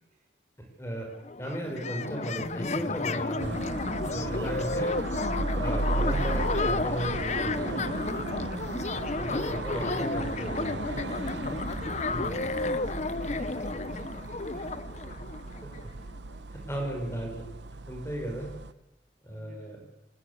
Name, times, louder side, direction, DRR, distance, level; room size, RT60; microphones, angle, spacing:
voice 1, 0.8-1.1 1.4-3.6 4.1-5.0 5.6-8.0 9.2-11.0 12.1-12.4 15.6-15.7 16.5-17.4 17.9-18.5 19.2-19.8, right 1 dB, 15° left, 2 dB, 5.9 m, -35 dB
sound 1, 1.0-1.1 1.2-15.8, left 3 dB, 40° left, 0.8 m, -32 dB
sound 2, 3.4-18.7, right 2 dB, 75° right, 1.0 m, -35 dB
voice 2, 12.1-15.4 15.8-17.3 19.2-19.9, right 1 dB, 45° right, 2 dB, 6.2 m, -55 dB
27.0 x 20.0 x 8.5 m, 0.99 s
head